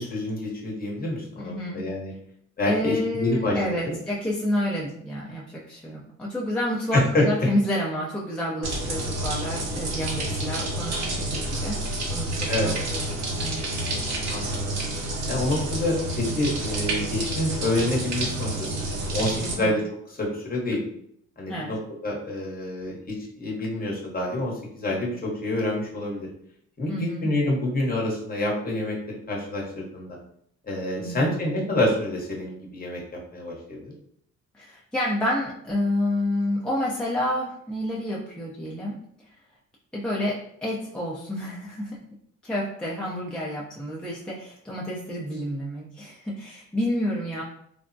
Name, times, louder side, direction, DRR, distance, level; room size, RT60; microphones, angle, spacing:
voice 1, 0.0-2.1 2.6-3.9 6.9-7.2 12.5-12.7 14.3-14.7 15.3-19.8 20.2-20.8 21.4-21.8 22.0-26.3 26.8-29.0 29.3-30.2 30.7-33.0 33.3-33.9, left 1 dB, 30° left, -2 dB, 0.9 m, -27 dB
voice 2, 1.4-1.8 2.6-11.8 12.1-13.1 13.4-13.7 19.4-19.8 21.5-21.7 26.9-27.3 31.0-31.4 34.5-38.9 39.9-42.0 42.4-47.4, left 1 dB, 5° left, -5 dB, 0.5 m, -29 dB
sound 1, 8.6-19.5, right 1 dB, 60° right, 0.8 m, -29 dB
3.4 x 2.1 x 2.6 m, 0.69 s
cardioid pair, 90°, 30 cm